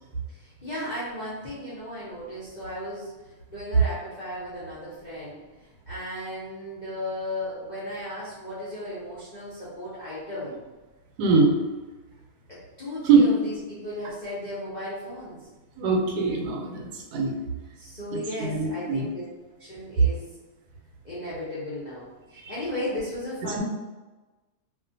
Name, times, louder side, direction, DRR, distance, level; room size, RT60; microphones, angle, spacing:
voice 1, 0.3-3.1 3.5-10.6 12.5-15.5 17.8-19.2 19.6-20.3 21.0-23.6, left 1 dB, 50° left, -10 dB, 0.5 m, -35 dB
voice 2, 11.2-11.5 13.0-13.2 15.8-17.3 18.1-19.1 22.4-22.5 23.6-23.7, right 4 dB, 85° right, 1 dB, 1.1 m, -22 dB
2.4 x 2.4 x 2.6 m, 1.2 s
omnidirectional pair, 1.6 m